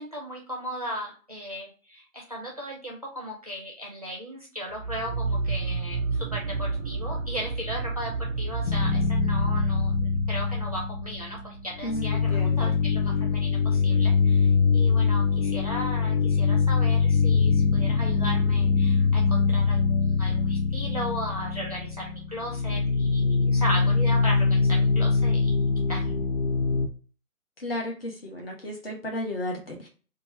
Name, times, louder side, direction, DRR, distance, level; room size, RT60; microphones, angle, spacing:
voice 1, 0.0-26.1, equal, 25° right, -2 dB, 0.6 m, -36 dB
sound 1, 4.7-12.0, right 4 dB, 80° right, 0.6 m, -31 dB
sound 2, 8.7-11.5 11.8-26.9, left 5 dB, 60° left, 0.5 m, -23 dB
voice 2, 11.8-12.7 27.6-29.9, left 1 dB, 40° left, 0 dB, 1.1 m, -33 dB
2.9 x 2.4 x 4.3 m, 0.37 s
hypercardioid pair, 170°, 43 cm